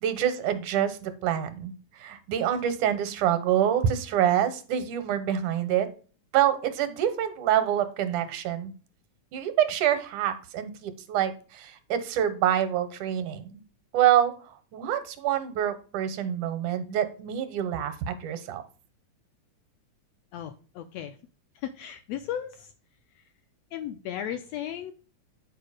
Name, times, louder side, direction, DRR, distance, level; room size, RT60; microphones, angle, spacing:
voice 1, 0.0-5.9 6.3-8.7 9.3-13.6 13.9-18.6, right 10 dB, 80° right, 10 dB, 2.4 m, -26 dB
voice 2, 20.3-21.2 21.6-22.7 23.7-24.9, left 10 dB, 80° left, 9 dB, 1.5 m, -35 dB
9.0 x 4.7 x 5.0 m, 0.37 s
omnidirectional pair, 3.5 m